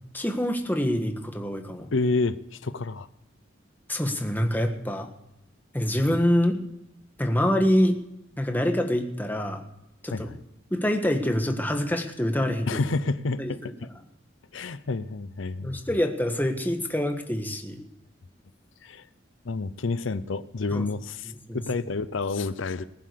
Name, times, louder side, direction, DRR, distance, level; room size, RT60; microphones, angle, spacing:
voice 1, 0.1-1.9 3.9-5.1 5.7-6.6 7.2-8.0 8.4-9.6 10.0-10.3 10.7-12.8 13.4-13.7 15.6-17.8 20.7-20.8 21.5-21.6, equal, 10° left, 5 dB, 1.5 m, -25 dB
voice 2, 1.9-3.1 10.1-10.4 12.7-13.9 14.5-15.8 18.8-19.1 19.4-22.8, left 3 dB, 90° left, 14 dB, 0.7 m, -29 dB
20.0 x 7.4 x 6.8 m, 0.85 s
head